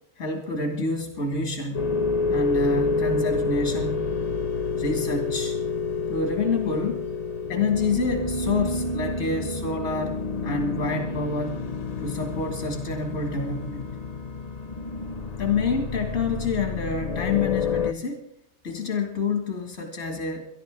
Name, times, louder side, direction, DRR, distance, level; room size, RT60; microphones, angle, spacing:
voice 1, 0.2-1.9 2.3-4.1 4.7-5.6 6.1-7.1 7.5-11.7 12.0-13.9 15.4-18.3 18.6-20.5, left 3 dB, 85° left, 3 dB, 2.5 m, -28 dB
sound 1, 1.7-17.9, left 4 dB, 40° left, 0.7 m, -29 dB
24.5 x 11.5 x 3.7 m, 0.72 s
omnidirectional pair, 1.2 m